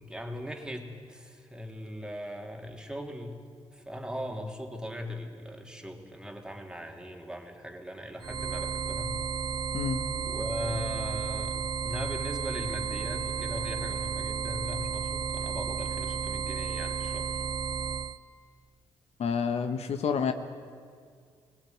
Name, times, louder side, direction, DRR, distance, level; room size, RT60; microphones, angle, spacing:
voice 1, 0.0-3.4 3.7-9.2 10.2-17.4, equal, 5° right, 3 dB, 2.9 m, -39 dB
Sine Waves - Only C Notes, 8.2-18.2, right 6 dB, 40° right, 0.7 m, -33 dB
voice 2, 19.2-20.3, left 6 dB, 70° left, 8 dB, 1.2 m, -28 dB
19.0 x 18.0 x 9.4 m, 2.1 s
supercardioid pair, 60°, 11 cm